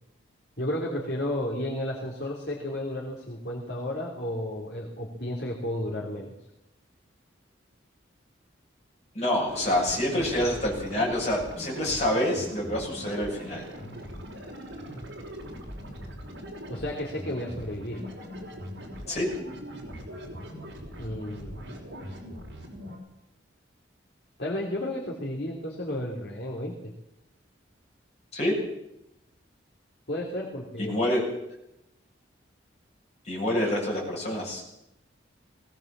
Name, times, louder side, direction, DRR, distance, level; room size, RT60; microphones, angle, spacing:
voice 1, 0.6-6.3 16.7-18.0 21.0-21.7 24.4-26.9 30.1-31.1, left 1 dB, 55° left, -3 dB, 3.3 m, -32 dB
voice 2, 9.1-13.6 19.1-19.3 28.3-28.6 30.8-31.2 33.2-34.6, left 1 dB, 35° left, -3 dB, 7.8 m, -27 dB
sound 1, 9.5-23.0, equal, 65° right, 5.5 m, -41 dB
20.5 x 18.0 x 7.5 m, 0.86 s
head